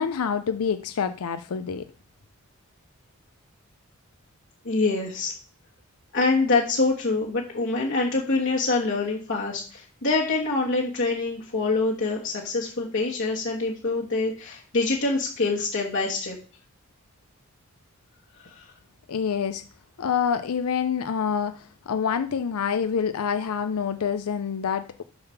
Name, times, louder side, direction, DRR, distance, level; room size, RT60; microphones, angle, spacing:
voice 1, 0.0-1.8 19.1-19.6 20.0-25.0, left 7 dB, 80° left, 0.5 m, -27 dB
voice 2, 4.6-5.3 6.1-16.4 18.4-18.7, left 3 dB, 55° left, 1.4 m, -25 dB
6.7 x 5.8 x 5.7 m
head